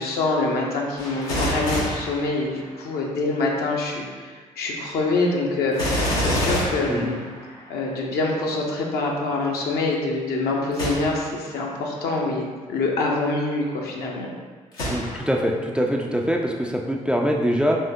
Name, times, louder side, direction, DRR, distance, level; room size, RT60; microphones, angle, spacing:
voice 1, 0.0-7.2 7.7-14.3, left 2 dB, 60° left, -1 dB, 0.7 m, -25 dB
Gunshot gunfire, 1.0-3.0 5.7-7.8 10.7-11.4 12.0-12.1 14.7-15.5 16.0-16.1, equal, 85° left, 1.0 m, -27 dB
voice 2, 14.9-17.8, equal, 5° right, 1 dB, 0.3 m, -23 dB
3.6 x 3.4 x 2.6 m, 1.5 s
hypercardioid pair, 45°, 18 cm